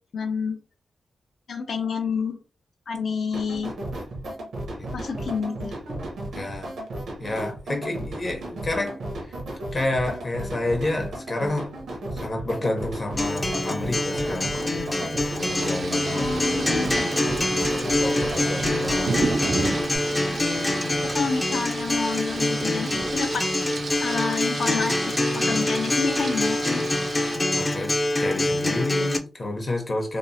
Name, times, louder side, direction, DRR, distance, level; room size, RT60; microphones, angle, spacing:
voice 1, 0.1-0.6 1.5-2.4 2.9-3.7 4.9-5.7 16.1-17.0 21.1-23.4 24.0-26.8, left 5 dB, 75° left, 0.5 m, -29 dB
sound 1, 3.3-20.0, right 1 dB, 90° right, 0.7 m, -34 dB
voice 2, 6.3-6.8 7.2-9.0 9.7-11.7 12.1-16.7 17.6-20.1 27.6-30.2, left 2 dB, 45° left, 0.8 m, -30 dB
Acoustic guitar, 13.2-29.2, left 1 dB, 20° left, 0.4 m, -25 dB
sound 2, 15.4-27.4, right 4 dB, 55° right, 0.3 m, -32 dB
2.9 x 2.0 x 2.6 m
cardioid pair, 90°, 0 cm